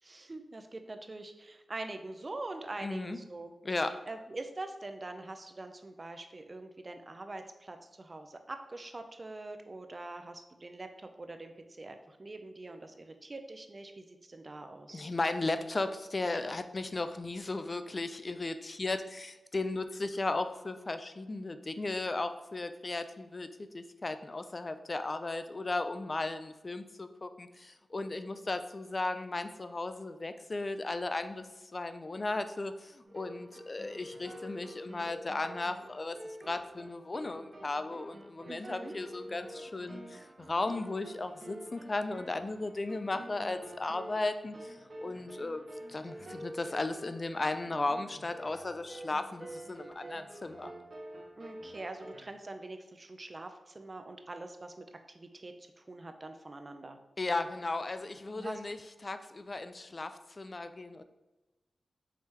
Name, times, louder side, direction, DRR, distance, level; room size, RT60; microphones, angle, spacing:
voice 1, 0.0-3.5 4.1-15.0 38.5-38.9 51.4-57.0 58.3-58.6, right 2 dB, 40° right, 6 dB, 0.5 m, -44 dB
voice 2, 2.8-3.2 3.6-4.0 14.9-23.5 23.7-31.5 31.7-50.7 57.2-58.8 59.0-61.0, left 2 dB, 40° left, 10 dB, 0.3 m, -36 dB
sound 1, 33.0-52.2, right 1 dB, 55° right, 0.9 m, -48 dB
4.7 x 3.3 x 2.9 m, 1.1 s
cardioid pair, 65°, 0 cm